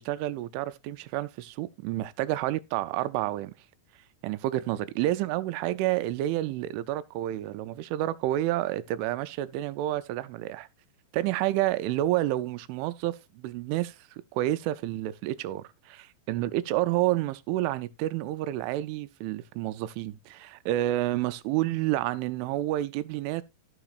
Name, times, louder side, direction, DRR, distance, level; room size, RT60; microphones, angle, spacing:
voice 1, 0.0-3.5 4.2-10.7 11.1-14.0 14.3-23.4, right 15 dB, 85° right, 3.0 m, -29 dB
16.5 x 6.2 x 2.5 m
omnidirectional pair, 5.4 m